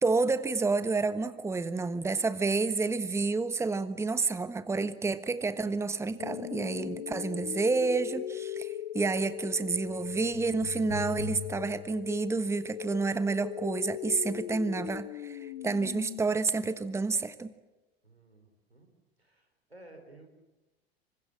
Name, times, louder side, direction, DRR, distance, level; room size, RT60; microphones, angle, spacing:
voice 1, 0.0-17.5, right 4 dB, 10° right, 13 dB, 1.3 m, -29 dB
sound 1, 6.2-16.2, left 11 dB, 60° left, 1.6 m, -39 dB
voice 2, 18.0-18.9 19.2-20.3, right 2 dB, 90° right, 5 dB, 4.8 m, -54 dB
27.5 x 24.5 x 7.6 m, 1.1 s
figure-of-eight pair, 80°, 31 cm